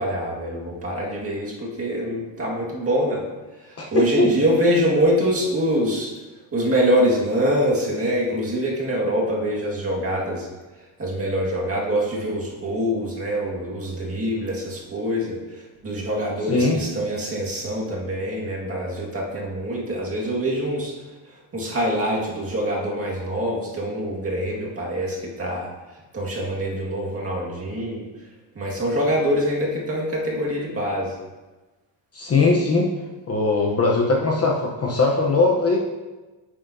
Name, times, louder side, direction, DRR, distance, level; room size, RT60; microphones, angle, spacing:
voice 1, 0.0-3.3 3.6-6.1 6.5-10.5 11.0-20.9 21.5-25.7 26.1-28.0 28.6-31.1, equal, 30° right, -4 dB, 1.9 m, -24 dB
voice 2, 3.8-4.3 16.5-16.8 32.1-32.9 33.3-35.8, left 3 dB, 30° left, -2 dB, 0.9 m, -20 dB
10.0 x 7.4 x 2.7 m, 1.2 s
cardioid pair, 155°, 48 cm